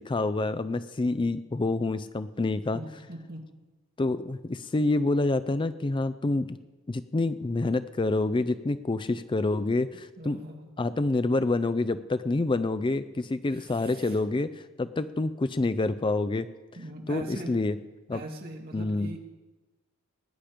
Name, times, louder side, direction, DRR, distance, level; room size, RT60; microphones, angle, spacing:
voice 1, 0.0-2.8 4.0-6.6 6.9-10.4 10.8-16.5 17.1-17.8 18.1-18.2 18.7-19.1, left 2 dB, 25° left, 13 dB, 0.4 m, -27 dB
voice 2, 2.7-3.4 10.2-10.7 13.5-14.2 16.7-17.6 18.1-19.2, right 1 dB, 45° right, 1 dB, 2.3 m, -41 dB
20.5 x 10.0 x 5.0 m, 1.2 s
head